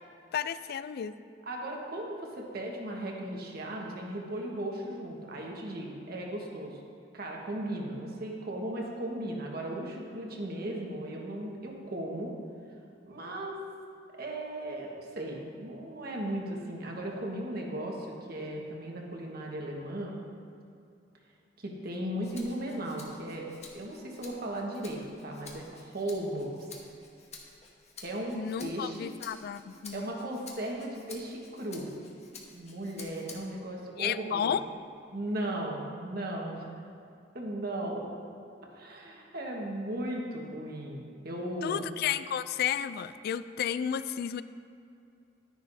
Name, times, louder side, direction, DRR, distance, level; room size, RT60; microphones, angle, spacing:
voice 1, 0.3-1.1 28.3-30.1 34.0-34.6 41.6-44.4, left 8 dB, 55° left, 14 dB, 0.3 m, -32 dB
voice 2, 1.4-6.8 7.1-12.3 13.1-13.6 14.1-20.1 21.6-23.5 23.7-26.5 28.0-29.1 29.9-31.9 32.5-34.6 35.1-36.7 37.3-38.1 38.7-41.9, right 1 dB, 55° right, -1 dB, 1.4 m, -36 dB
Rattle (instrument), 22.2-33.7 34.1-35.3, left 4 dB, 35° left, 1.1 m, -51 dB
11.5 x 10.0 x 2.7 m, 2.5 s
head